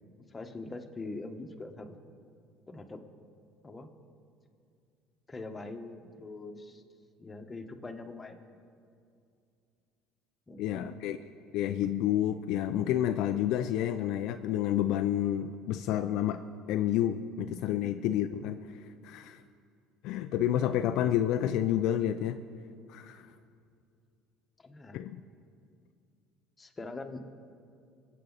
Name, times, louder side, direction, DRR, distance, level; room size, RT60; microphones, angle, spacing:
voice 1, 0.3-2.0 2.7-3.0 3.6-3.9 5.3-6.8 7.2-8.4 10.5-11.1 17.8-18.2 21.0-21.1 24.6-25.0 26.6-27.2, left 3 dB, 20° left, 4 dB, 1.4 m, -43 dB
voice 2, 10.6-11.2 11.5-16.4 16.7-18.6 19.0-19.4 20.0-22.4 22.9-23.3 24.9-25.2, left 11 dB, 70° left, 9 dB, 0.4 m, -29 dB
24.0 x 8.4 x 4.1 m, 2.4 s
supercardioid pair, 90°, 0 cm